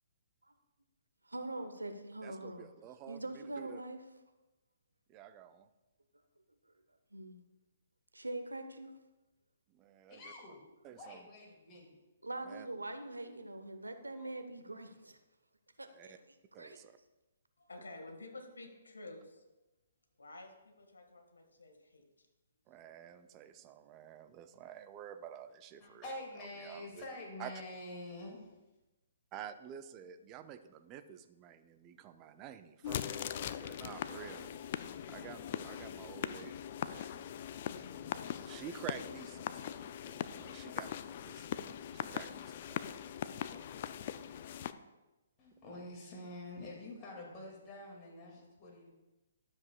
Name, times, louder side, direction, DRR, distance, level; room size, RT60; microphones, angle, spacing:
voice 1, 1.3-2.7 3.1-4.0 7.1-7.4 8.1-8.9 12.2-15.2 15.8-16.8, right 2 dB, 90° right, 8 dB, 0.9 m, -43 dB
voice 2, 2.2-3.8 5.1-5.7 9.7-10.3 10.8-11.3 12.4-12.7 15.9-16.2 16.5-16.9 22.7-26.1 26.6-27.0 27.4-27.5 29.3-33.3 33.6-36.6 36.9-37.2 37.8-40.9 41.2-41.6 41.9-42.9 44.3-44.4, right 10 dB, 25° right, 9 dB, 0.5 m, -50 dB
voice 3, 10.1-10.6 10.9-12.0 13.8-14.3 25.8-28.5 45.4-48.9, left 1 dB, 25° left, -2 dB, 2.3 m, -47 dB
voice 4, 17.6-19.4 20.2-22.3, left 2 dB, 80° left, 3 dB, 1.8 m, -51 dB
sound 1, 32.8-44.7, left 10 dB, 45° left, 0.4 m, -41 dB
12.5 x 7.3 x 2.4 m, 1.1 s
figure-of-eight pair, 130°, 0 cm